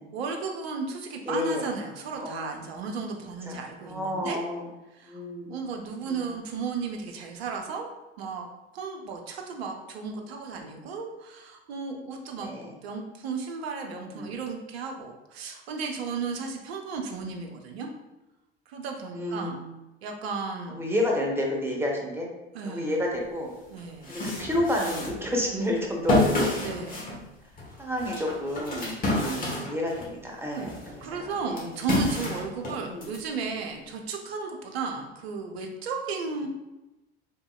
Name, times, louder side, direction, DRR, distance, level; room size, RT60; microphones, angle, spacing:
voice 1, 0.1-4.4 4.9-5.2 5.5-7.9 8.2-8.5 8.7-17.9 18.7-19.6 20.0-20.8 22.5-22.9 23.7-24.1 26.6-27.0 27.8-27.9 30.5-36.5, right 4 dB, 70° right, 2 dB, 0.6 m, -34 dB
voice 2, 1.3-1.7 2.1-2.6 3.5-4.7 5.0-5.6 5.9-6.2 12.4-12.7 14.1-14.3 19.1-19.7 20.7-22.3 22.6-23.5 24.1-26.6 27.8-30.7 31.1-31.7 32.8-33.1, left 1 dB, 5° right, -1 dB, 0.8 m, -30 dB
sound 1, 23.2-23.3 23.8-30.1 30.6-33.2, left 1 dB, 25° left, 1.2 m, -29 dB
3.5 x 2.7 x 2.3 m, 1.0 s
figure-of-eight pair, 75°, 32 cm